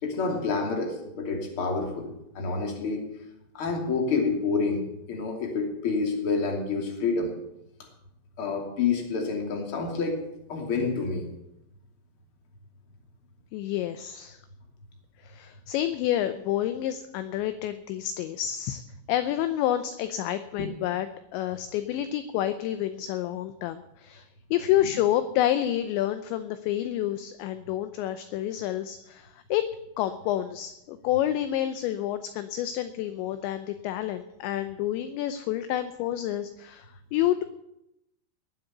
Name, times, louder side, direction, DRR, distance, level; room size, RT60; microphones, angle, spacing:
voice 1, 0.0-3.0 3.5-7.3 8.4-10.2 10.5-11.3 20.6-20.7, left 4 dB, 35° left, 2 dB, 2.9 m, -28 dB
voice 2, 13.5-14.4 15.2-18.8 19.1-21.1 21.3-29.7 30.0-37.4, left 12 dB, 80° left, 11 dB, 2.7 m, -29 dB
19.5 x 7.9 x 8.1 m, 0.84 s
omnidirectional pair, 5.7 m